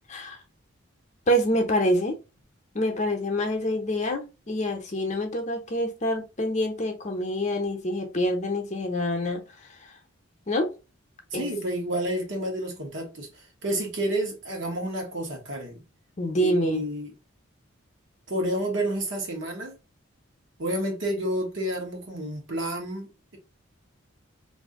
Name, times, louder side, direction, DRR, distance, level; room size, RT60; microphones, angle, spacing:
voice 1, 1.3-2.2 2.7-9.4 10.5-10.7 11.3-11.5 16.2-16.8, equal, 35° left, 0.7 m, -26 dB
voice 2, 11.3-15.8 16.4-17.1 18.3-19.8 20.6-23.4, right 1 dB, 65° right, 1.1 m, -30 dB
2.7 x 2.6 x 3.6 m
head